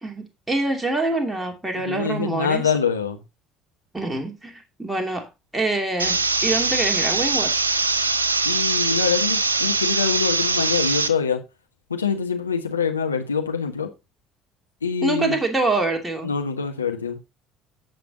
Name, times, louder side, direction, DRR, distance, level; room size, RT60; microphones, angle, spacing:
voice 1, 0.0-2.7 3.9-5.3 5.5-7.5 15.0-16.3, right 2 dB, 10° right, 2.8 m, -25 dB
voice 2, 1.8-3.2 8.4-11.4 11.9-13.9 14.8-15.4 16.2-17.2, left 6 dB, 85° left, 1.4 m, -25 dB
sound 1, 6.0-11.1, right 3 dB, 85° right, 0.7 m, -22 dB
15.5 x 5.9 x 2.8 m
figure-of-eight pair, 60°, 0 cm